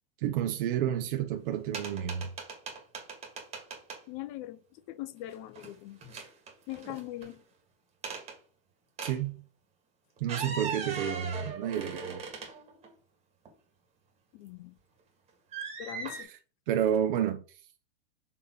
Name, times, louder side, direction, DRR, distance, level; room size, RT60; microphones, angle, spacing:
voice 1, 0.2-2.3 9.0-9.5 10.2-12.3 16.7-17.6, right 10 dB, 55° right, 0.8 m, -30 dB
sound 1, 1.7-4.0 5.3-5.7 6.0-7.3 8.0-8.3 9.0-9.2 10.2-12.9 13.4-13.5 15.5-16.2, right 4 dB, 20° right, 1.7 m, -39 dB
voice 2, 4.1-6.0 6.7-7.4 14.3-14.8 15.8-16.3, left 15 dB, 40° left, 0.6 m, -41 dB
7.0 x 3.2 x 4.3 m
hypercardioid pair, 140°, 30 cm